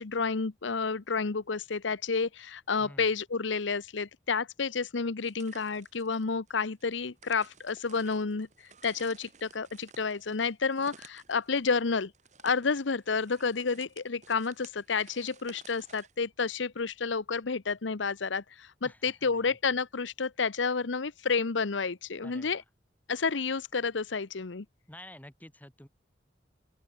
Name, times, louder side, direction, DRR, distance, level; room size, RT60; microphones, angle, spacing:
voice 1, 0.0-8.5 8.8-12.1 12.4-22.6 23.1-24.6, left 5 dB, 90° left, 0.9 m, -30 dB
crunching scraping, 5.2-16.1, right 5 dB, 40° right, 3.7 m, -55 dB
voice 2, 18.8-19.6 22.2-22.6 24.9-25.9, left 1 dB, 10° left, 3.2 m, -50 dB
open air
head